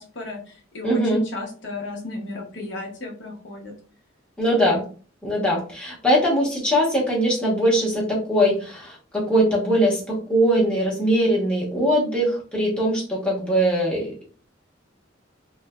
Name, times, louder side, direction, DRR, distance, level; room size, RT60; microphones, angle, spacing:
voice 1, 0.0-3.7, left 2 dB, 60° left, 0 dB, 0.9 m, -34 dB
voice 2, 0.8-1.2 4.4-4.8 5.2-14.3, equal, 5° left, -5 dB, 1.0 m, -21 dB
3.2 x 2.2 x 2.3 m, 0.40 s
head